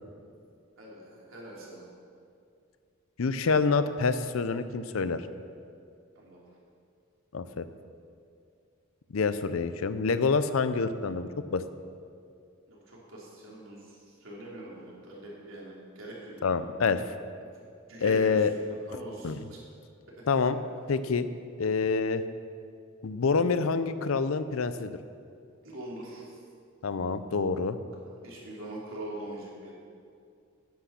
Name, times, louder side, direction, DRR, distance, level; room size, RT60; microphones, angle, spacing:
voice 1, 0.8-1.8 6.1-6.4 12.7-16.4 17.9-18.4 18.7-19.6 25.6-26.2 28.2-29.7, right 1 dB, 75° right, -5 dB, 3.1 m, -43 dB
voice 2, 3.2-5.2 7.3-7.7 9.1-11.6 16.4-17.0 18.0-18.5 19.2-19.4 20.3-20.6 20.9-21.3 21.6-22.2 23.0-25.0 26.8-27.8, left 4 dB, 85° left, 12 dB, 0.6 m, -27 dB
10.5 x 8.5 x 5.8 m, 2.4 s
head